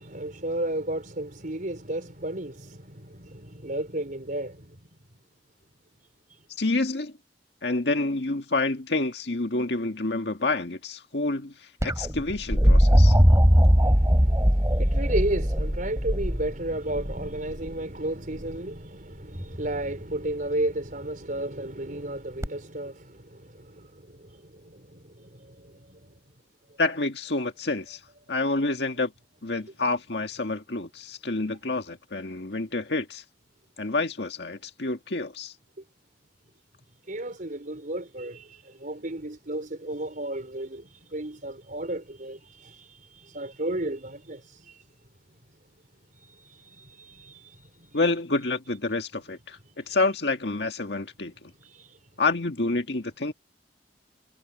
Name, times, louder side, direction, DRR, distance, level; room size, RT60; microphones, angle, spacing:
voice 1, 0.0-4.8 6.3-6.4 13.8-26.1 37.1-44.8 46.2-48.0 49.9-50.0 51.6-52.0, right 1 dB, 50° right, 5.4 m, -34 dB
voice 2, 6.6-7.1 7.6-11.5 11.8-13.2 26.8-28.0 28.3-29.1 29.4-33.2 33.8-35.5 47.9-51.3 52.2-53.3, left 3 dB, 70° left, 1.9 m, -28 dB
sound 1, 11.8-17.7 19.3-19.9 22.4-22.5, equal, 20° right, 4.4 m, -20 dB
head